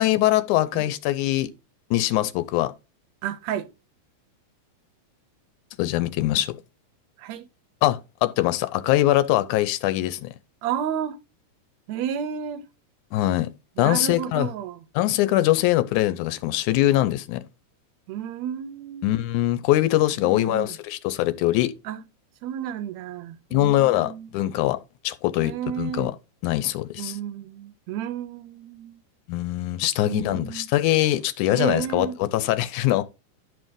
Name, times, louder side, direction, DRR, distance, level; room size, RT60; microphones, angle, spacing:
voice 1, 0.0-1.5 1.9-2.7 5.8-6.6 7.8-10.3 13.1-13.5 13.8-14.5 15.0-17.4 19.0-21.7 23.5-24.8 25.0-26.1 26.4-27.1 29.3-33.0, left 15 dB, 85° left, 2.1 m, -22 dB
voice 2, 3.2-3.7 7.2-7.5 10.6-11.2 11.9-12.7 13.8-14.8 18.1-19.2 20.2-20.8 21.8-22.0 22.4-24.3 25.4-26.1 27.0-29.0 30.0-30.7 31.5-32.2, right 9 dB, 75° right, 1.7 m, -32 dB
11.0 x 5.3 x 3.7 m
omnidirectional pair, 3.5 m